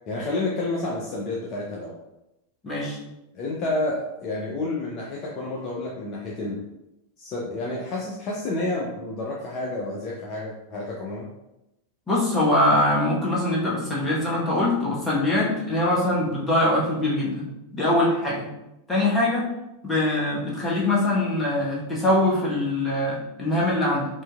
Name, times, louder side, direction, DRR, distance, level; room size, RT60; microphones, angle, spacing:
voice 1, 0.1-1.9 3.3-6.6 7.2-11.3, left 2 dB, 35° left, -3 dB, 0.6 m, -30 dB
voice 2, 2.6-3.0 12.1-17.4 17.7-18.5 18.9-19.4 19.8-24.1, left 1 dB, 15° left, -5 dB, 1.1 m, -23 dB
4.4 x 2.7 x 2.3 m, 0.91 s
figure-of-eight pair, 90°, 0 cm